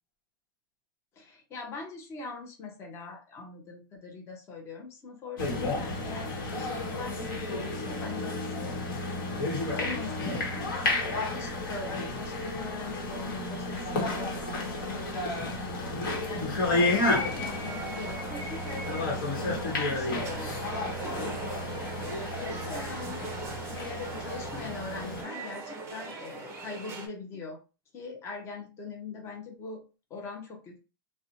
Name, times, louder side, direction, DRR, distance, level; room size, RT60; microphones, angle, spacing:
voice 1, 1.1-9.4 9.7-20.6 21.6-22.0 22.4-23.3 23.7-27.6 27.9-29.8 30.1-30.8, left 3 dB, 20° left, 1 dB, 0.6 m, -42 dB
sound 1, 5.4-25.2, left 2 dB, 70° left, 1.1 m, -32 dB
sound 2, 16.6-27.1, right 3 dB, 20° right, 0.5 m, -41 dB
2.5 x 2.1 x 2.8 m, 0.32 s
supercardioid pair, 150°, 12 cm